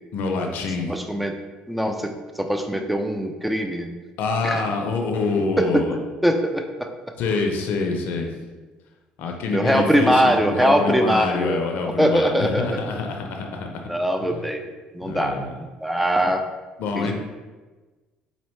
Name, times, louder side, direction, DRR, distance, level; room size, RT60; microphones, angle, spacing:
voice 1, 0.1-0.9 4.2-5.9 7.2-8.3 9.2-13.9 15.1-15.5 16.8-17.1, left 4 dB, 70° left, 3 dB, 0.5 m, -26 dB
voice 2, 0.9-1.4 1.7-3.9 4.4-4.6 5.6-7.1 9.5-12.8 13.9-15.4 15.8-16.4 17.0-17.1, equal, ahead, 5 dB, 0.4 m, -22 dB
4.2 x 2.7 x 3.1 m, 1.2 s
supercardioid pair, 80°, 3 cm